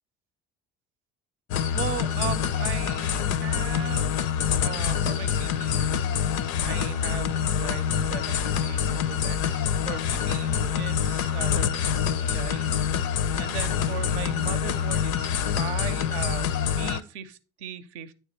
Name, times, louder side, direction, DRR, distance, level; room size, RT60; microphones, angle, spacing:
sound 1, 1.5-17.0, left 8 dB, 60° left, 0.6 m, -26 dB
voice 1, 1.7-4.2 4.5-18.1, right 8 dB, 85° right, 0.6 m, -38 dB
9.1 x 3.5 x 4.2 m
hypercardioid pair, 60°, 33 cm